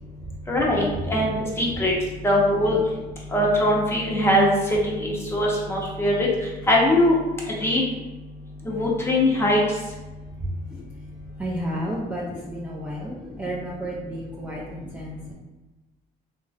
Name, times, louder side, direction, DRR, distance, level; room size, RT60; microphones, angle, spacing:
voice 1, 0.5-1.9 2.2-2.8 3.3-4.5 4.9-6.3 6.7-7.2 7.6-7.8 8.7-9.6, left 1 dB, 15° left, -3 dB, 0.7 m, -21 dB
voice 2, 11.4-15.3, right 1 dB, 10° right, -5 dB, 0.4 m, -32 dB
3.0 x 2.6 x 2.4 m, 1.1 s
cardioid pair, 110°, 17 cm